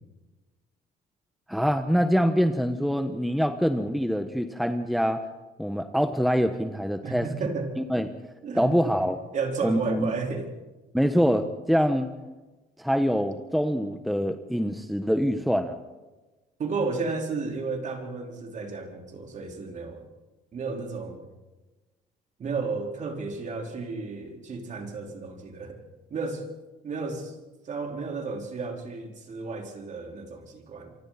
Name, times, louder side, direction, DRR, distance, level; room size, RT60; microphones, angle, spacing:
voice 1, 1.5-5.2 5.6-7.3 7.8-8.1 8.5-9.2 9.6-10.1 10.9-12.1 12.8-15.8, equal, ahead, 7 dB, 1.2 m, -25 dB
voice 2, 7.0-7.7 8.4-8.7 9.3-10.5 16.6-20.0 20.5-21.2 22.4-25.8 26.1-26.5 26.8-27.4 27.6-31.0, right 4 dB, 45° right, 2 dB, 4.5 m, -32 dB
27.5 x 25.0 x 4.3 m, 1.1 s
cardioid pair, 110°, 17 cm